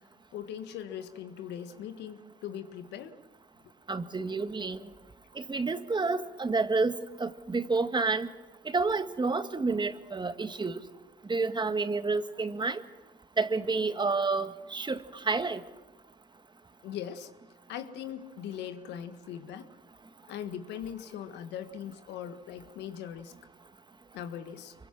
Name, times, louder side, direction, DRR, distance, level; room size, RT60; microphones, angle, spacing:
voice 1, 0.3-3.2 16.8-17.3 17.7-19.7 20.3-23.3 24.1-24.7, left 9 dB, 75° left, 9 dB, 1.7 m, -40 dB
voice 2, 3.9-4.8 5.3-8.3 8.6-10.8 11.3-12.8 13.4-15.6, right 3 dB, 25° right, 10 dB, 1.7 m, -29 dB
26.0 x 23.0 x 6.1 m, 1.2 s
supercardioid pair, 65°, 18 cm